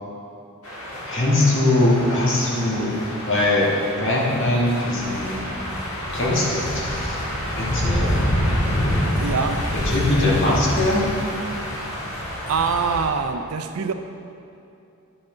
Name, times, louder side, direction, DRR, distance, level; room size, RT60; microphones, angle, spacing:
sound 1, 0.6-13.0, equal, 75° left, 1.8 m, -27 dB
voice 1, 1.1-2.9 3.2-3.7 4.0-5.4 6.1-7.2 7.5-8.2 9.7-11.1, left 2 dB, 55° left, -5 dB, 1.8 m, -21 dB
voice 2, 9.2-9.6 12.5-13.9, right 5 dB, 80° right, 8 dB, 0.5 m, -24 dB
9.9 x 5.9 x 3.8 m, 2.7 s
head